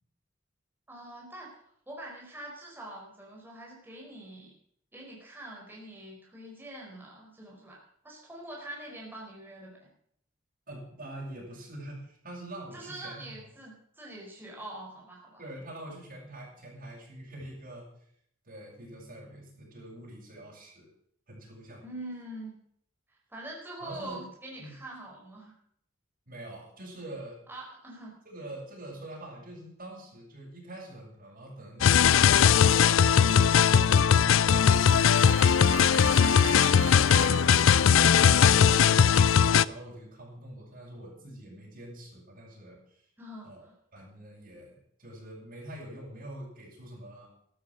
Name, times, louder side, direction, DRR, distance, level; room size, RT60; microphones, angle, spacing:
voice 1, 0.9-1.5 1.9-4.5 4.9-9.9 12.7-15.4 21.8-22.6 23.1-25.6 27.5-28.1 36.0-36.8 43.2-43.7, right 1 dB, 10° right, -3 dB, 4.8 m, -44 dB
voice 2, 10.7-13.3 15.4-17.9 18.5-20.9 21.3-21.8 23.8-24.2 24.6-24.8 26.3-27.4 28.3-35.2 35.9-36.5 37.0-43.0 43.4-43.7 43.9-47.3, right 1 dB, 45° right, -5 dB, 7.1 m, -45 dB
sound 1, 31.8-39.6, left 7 dB, 70° left, 0.5 m, -20 dB
sound 2, 34.6-39.4, right 7 dB, 70° right, 1.1 m, -41 dB
14.0 x 12.0 x 6.3 m, 0.67 s
head